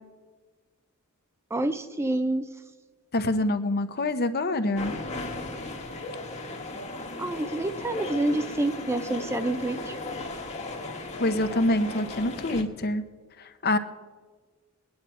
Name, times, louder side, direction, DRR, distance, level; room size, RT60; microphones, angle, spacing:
voice 1, 1.5-2.4 7.2-10.0, right 2 dB, 10° right, 10 dB, 0.5 m, -28 dB
voice 2, 3.1-5.0 11.2-13.0 13.4-13.8, left 1 dB, 45° left, 10 dB, 0.8 m, -26 dB
sound 1, 4.7-12.6, left 2 dB, 30° left, 1.4 m, -36 dB
21.5 x 9.7 x 4.4 m, 1.4 s
head